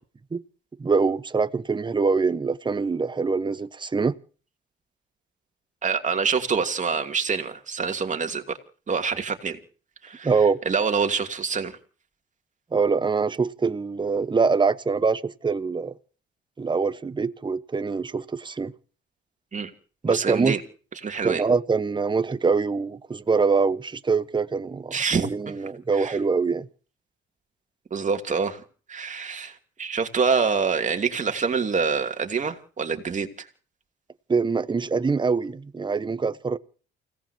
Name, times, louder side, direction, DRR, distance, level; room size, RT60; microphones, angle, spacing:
voice 1, 0.8-4.1 10.2-10.6 12.7-15.9 16.6-18.7 20.0-20.5 21.2-26.7 34.3-36.6, right 4 dB, 25° right, 1.0 m, -24 dB
voice 2, 5.8-8.6 8.9-9.6 10.0-10.3 10.6-11.8 19.5-19.7 20.1-20.6 21.0-21.4 24.9-25.3 26.0-26.2 27.9-28.6 28.9-33.5, right 5 dB, 40° right, 2.8 m, -26 dB
29.5 x 17.5 x 2.8 m
cardioid pair, 90°, 20 cm